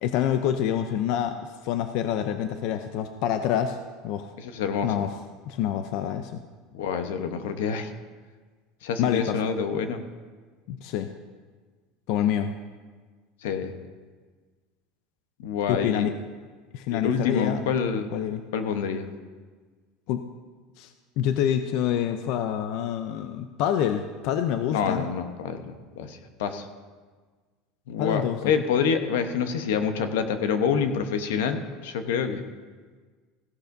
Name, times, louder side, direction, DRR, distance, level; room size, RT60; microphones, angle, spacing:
voice 1, 0.0-3.8 4.0-4.3 4.8-5.1 5.5-6.4 9.0-9.4 10.7-11.1 12.1-12.5 15.7-16.2 16.7-17.6 18.1-18.4 20.1-20.2 20.8-25.0 28.0-28.4, left 10 dB, 60° left, 8 dB, 0.5 m, -27 dB
voice 2, 4.4-4.9 6.7-7.9 8.8-10.0 13.4-13.7 15.4-16.1 16.9-18.1 18.5-19.1 24.7-26.7 27.9-32.4, left 6 dB, 90° left, 8 dB, 0.9 m, -27 dB
15.5 x 12.0 x 2.6 m, 1.4 s
supercardioid pair, 145°, 0 cm